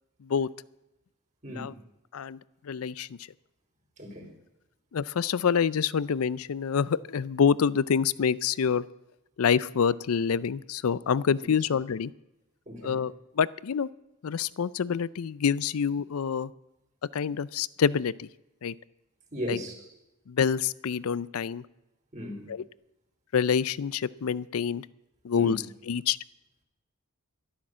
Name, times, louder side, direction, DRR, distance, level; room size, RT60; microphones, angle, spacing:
voice 1, 1.4-1.7 4.0-4.3 12.7-13.0 19.3-19.7 22.1-22.5 25.3-25.6, equal, 35° right, 3.5 m, -36 dB
voice 2, 2.6-3.2 4.9-8.8 9.4-12.1 12.8-13.9 14.2-16.5 17.1-18.3 18.6-18.7 19.5-19.6 20.3-21.6 22.5-22.6 23.3-24.9 25.2-26.2, left 7 dB, 85° left, 0.5 m, -27 dB
12.5 x 11.5 x 7.4 m
head